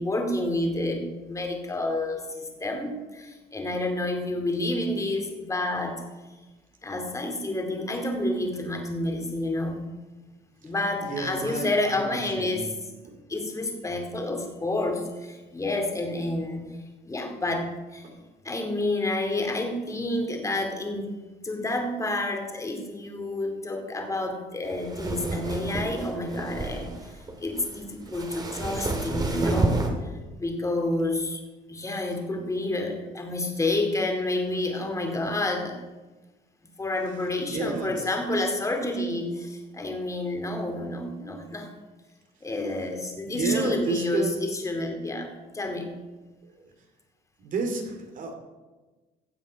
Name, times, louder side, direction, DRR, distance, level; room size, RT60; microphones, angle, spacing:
voice 1, 0.0-6.0 6.8-9.8 10.6-12.7 13.3-16.6 17.1-18.1 18.4-21.2 21.4-27.1 27.4-29.8 30.4-31.4 31.7-35.8 36.8-41.7 42.4-45.9, left 1 dB, 20° left, 3 dB, 2.3 m, -29 dB
voice 2, 11.0-12.1 12.4-12.6 13.0-13.1 18.0-18.1 37.4-38.0 43.3-44.3 47.4-48.3, right 3 dB, 50° right, 4 dB, 2.5 m, -31 dB
sound 1, 24.6-29.9, right 2 dB, 25° right, 2.0 m, -30 dB
16.0 x 7.4 x 5.2 m, 1.2 s
cardioid pair, 110°, 17 cm